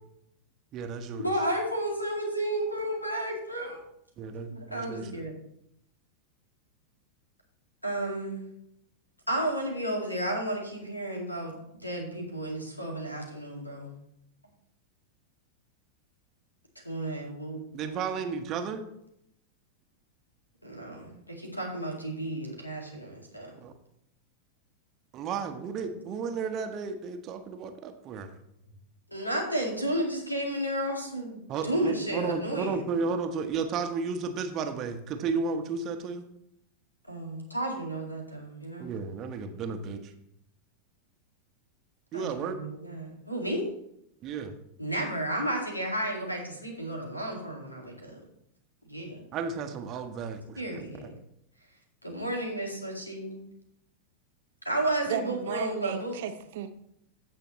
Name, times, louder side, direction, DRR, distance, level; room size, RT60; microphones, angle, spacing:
voice 1, 0.7-1.3 4.2-5.2 17.7-18.8 23.6-23.7 25.1-28.3 31.5-36.2 38.8-40.1 42.1-42.6 44.2-44.5 49.3-51.1, right 5 dB, 35° right, 6 dB, 1.2 m, -33 dB
voice 2, 1.2-3.8 4.5-5.3 7.8-8.4 9.3-13.9 16.8-18.0 20.6-23.5 25.9-26.0 29.1-32.8 37.1-38.9 42.1-43.6 44.8-48.2 48.9-49.2 50.6-51.1 52.0-53.4 54.6-56.2, right 1 dB, 90° left, 1 dB, 2.2 m, -32 dB
voice 3, 55.1-56.7, right 9 dB, 55° right, 9 dB, 0.9 m, -34 dB
15.5 x 5.6 x 3.2 m, 0.77 s
figure-of-eight pair, 90°, 0 cm